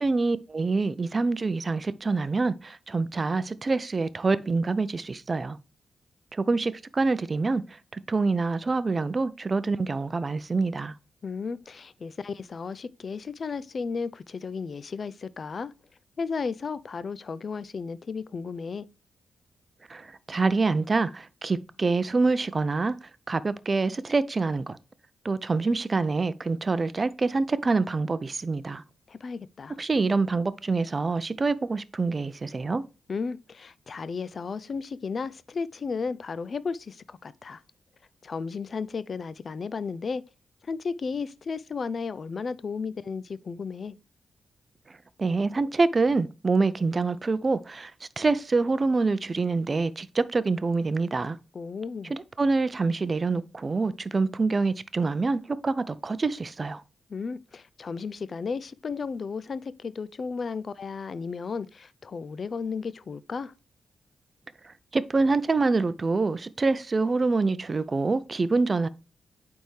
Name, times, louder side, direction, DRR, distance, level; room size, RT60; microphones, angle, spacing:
voice 1, 0.0-5.6 6.3-7.6 7.9-10.9 19.9-23.0 23.3-24.8 25.2-28.8 29.8-32.8 45.2-51.4 52.1-56.8 64.6-68.9, right 3 dB, 40° right, 0.5 m, -26 dB
voice 2, 11.2-15.7 16.2-18.9 29.1-29.8 33.1-37.6 38.2-40.2 40.7-43.9 51.5-52.1 57.1-63.5, left 5 dB, 55° left, 0.4 m, -34 dB
8.8 x 3.5 x 3.2 m
supercardioid pair, 50°, 0 cm